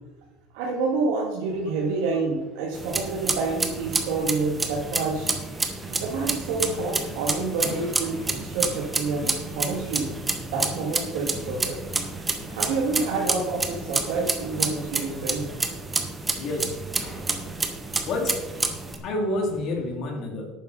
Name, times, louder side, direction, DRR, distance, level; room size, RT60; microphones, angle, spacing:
voice 1, 0.5-5.3 6.0-10.1 10.5-11.8 12.5-15.5, right 3 dB, 80° right, -2 dB, 1.9 m, -28 dB
sound 1, 1.4-20.0, left 1 dB, 15° left, 2.4 m, -45 dB
sound 2, 2.7-19.0, right 3 dB, 15° right, 1.0 m, -29 dB
voice 2, 16.4-16.7 18.1-18.4 19.0-20.5, left 2 dB, 45° left, 1 dB, 2.5 m, -28 dB
11.5 x 9.1 x 4.0 m, 1.2 s
cardioid pair, 165°, 0 cm